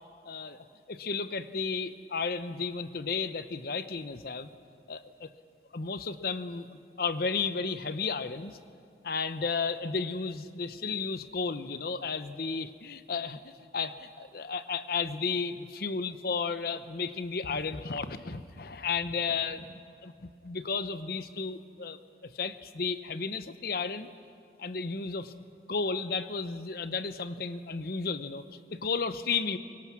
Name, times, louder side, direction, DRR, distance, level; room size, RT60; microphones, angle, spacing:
voice 1, 0.2-4.5 4.9-5.3 5.7-8.6 9.0-24.1 24.6-25.3 25.7-28.4 28.7-29.6, left 5 dB, 55° left, 12 dB, 0.8 m, -33 dB
23.5 x 22.0 x 6.1 m, 2.4 s
head